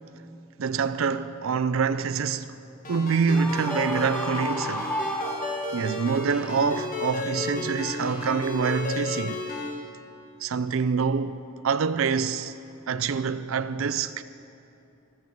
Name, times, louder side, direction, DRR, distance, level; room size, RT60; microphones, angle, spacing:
voice 1, 0.6-2.6 2.9-5.0 5.7-9.5 10.4-12.5 12.9-14.2, right 5 dB, 65° right, 0.5 m, -26 dB
Ringtone, 2.8-9.7, left 2 dB, 40° left, 1.6 m, -33 dB
Screaming, 3.3-6.0, left 1 dB, 5° left, 0.5 m, -32 dB
13.5 x 8.9 x 7.3 m
head